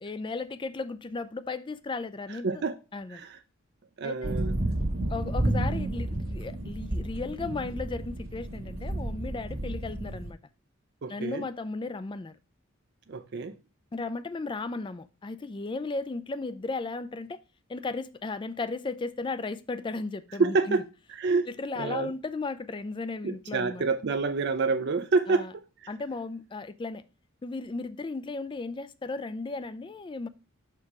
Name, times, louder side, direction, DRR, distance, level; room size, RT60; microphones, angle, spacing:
voice 1, 0.0-2.6 2.9-3.2 4.0-4.4 5.1-10.4 11.1-12.3 13.9-17.4 17.7-20.8 21.5-23.9 25.3-25.5 25.9-27.0 27.4-30.3, left 3 dB, 25° left, 0.3 m, -35 dB
voice 2, 2.4-2.7 3.1-3.4 4.0-4.5 11.0-11.5 13.1-13.6 20.4-20.8 21.1-21.5 21.8-22.1 23.2-25.9, right 4 dB, 55° right, 0.5 m, -28 dB
sound 1, 4.2-10.3, right 1 dB, 85° right, 1.3 m, -31 dB
5.8 x 4.6 x 4.7 m
head